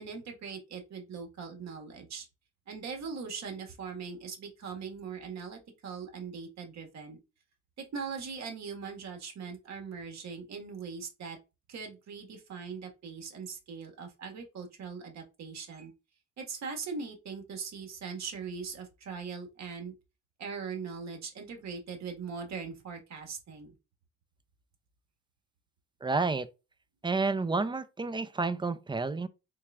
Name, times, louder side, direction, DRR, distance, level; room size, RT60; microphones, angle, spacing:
voice 1, 0.0-2.3 2.7-7.2 7.8-11.4 11.7-15.9 16.4-19.9 20.4-23.7, right 5 dB, 65° right, 1.8 m, -40 dB
voice 2, 26.0-26.5 27.0-29.3, right 3 dB, 15° right, 0.5 m, -30 dB
4.5 x 4.3 x 2.5 m
cardioid pair, 90°, 30 cm